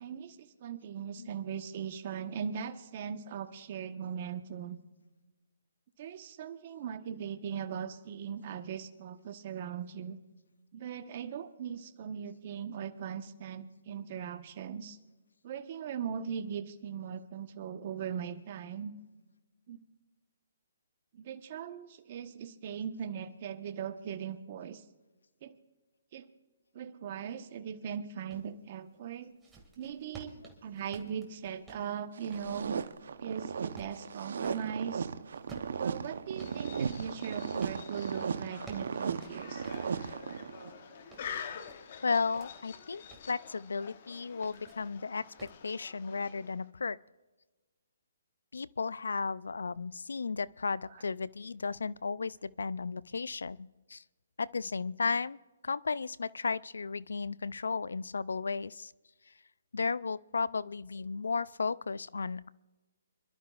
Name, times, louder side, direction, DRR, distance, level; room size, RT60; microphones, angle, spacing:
voice 1, 0.0-4.8 6.0-10.2 10.7-15.0 15.4-18.9 19.7-19.8 21.1-24.8 25.4-25.5 26.1-26.3 26.7-29.3 29.8-32.8 33.2-35.1 35.8-39.7, right 8 dB, 40° right, 8 dB, 1.1 m, -39 dB
sound 1, 28.3-28.5 29.1-34.7 35.3-37.8 38.3-40.2 40.7-42.5 42.9-43.3 44.2-44.9 45.4-45.6, right 4 dB, 10° right, 2.1 m, -53 dB
sound 2, 32.2-40.8, right 6 dB, 70° right, 0.8 m, -36 dB
sound 3, 36.3-46.7, left 8 dB, 50° left, 1.0 m, -47 dB
voice 2, 42.0-43.0 43.3-47.0 48.5-54.0 54.4-55.4 55.6-58.9 59.3-59.4 59.7-62.5, left 4 dB, 85° left, 20 dB, 0.4 m, -34 dB
27.5 x 12.0 x 2.4 m, 1.2 s
hypercardioid pair, 150°, 0 cm